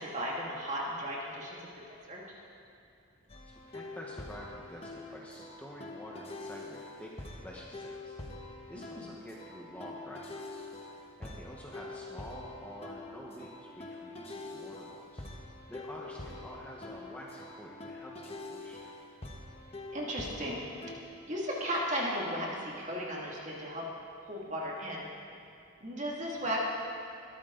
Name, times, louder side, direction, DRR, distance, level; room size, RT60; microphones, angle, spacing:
voice 1, 0.0-1.6 2.1-2.2 9.0-9.1 19.9-20.7 21.3-23.8 24.3-25.0 25.8-26.6, equal, 35° right, -3 dB, 2.4 m, -35 dB
sound 1, 3.3-21.0, left 2 dB, 30° left, 1.3 m, -45 dB
voice 2, 3.4-7.1 7.4-8.2 8.7-15.2 15.7-18.9 26.2-26.5, equal, 5° left, -4 dB, 1.2 m, -48 dB
21.5 x 13.0 x 4.0 m, 2.6 s
head